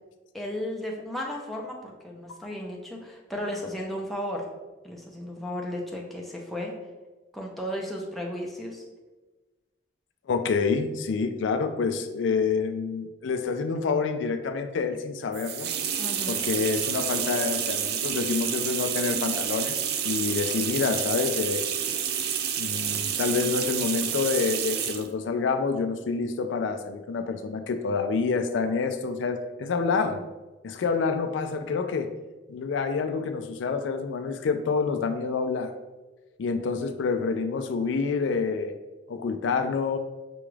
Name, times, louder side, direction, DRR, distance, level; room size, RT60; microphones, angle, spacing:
voice 1, 0.3-4.5 4.8-6.7 7.3-8.8 16.0-16.4, left 1 dB, ahead, -2 dB, 0.5 m, -34 dB
voice 2, 10.3-15.7 16.3-19.8 20.0-21.6 22.6-30.2 30.6-32.1 32.5-35.7 36.4-38.7 39.1-40.0, left 5 dB, 85° left, 8 dB, 0.4 m, -27 dB
sound 1, 15.3-25.1, right 8 dB, 55° right, 0.3 m, -29 dB
6.0 x 2.3 x 3.2 m, 1.2 s
head